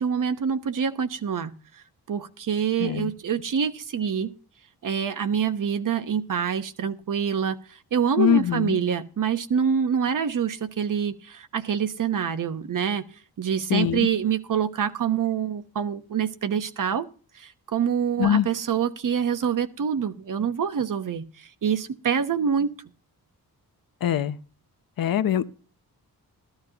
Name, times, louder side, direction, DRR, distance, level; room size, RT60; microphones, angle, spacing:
voice 1, 0.0-1.5 2.1-4.3 4.8-7.6 7.9-13.0 13.4-17.1 17.7-21.2 21.6-22.7, right 7 dB, 55° right, 1.0 m, -26 dB
voice 2, 2.8-3.1 8.2-8.8 13.7-14.1 18.2-18.5 24.0-24.4 25.0-25.5, left 10 dB, 65° left, 0.7 m, -23 dB
14.0 x 12.5 x 2.9 m
wide cardioid pair, 170°, 37 cm